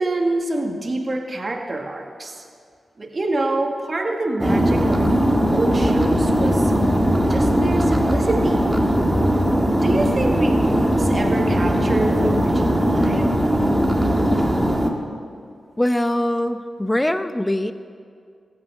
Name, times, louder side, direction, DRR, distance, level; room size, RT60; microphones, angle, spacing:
voice 1, 0.0-2.4 3.0-5.1 5.5-6.7 7.3-8.7 9.7-13.3, right 2 dB, 45° right, 3 dB, 1.9 m, -26 dB
sound 1, 4.4-14.9, equal, 10° right, 1.9 m, -19 dB
voice 2, 15.8-17.7, left 1 dB, 15° left, 10 dB, 0.8 m, -22 dB
15.5 x 8.9 x 7.4 m, 2.2 s
cardioid pair, 45°, 0 cm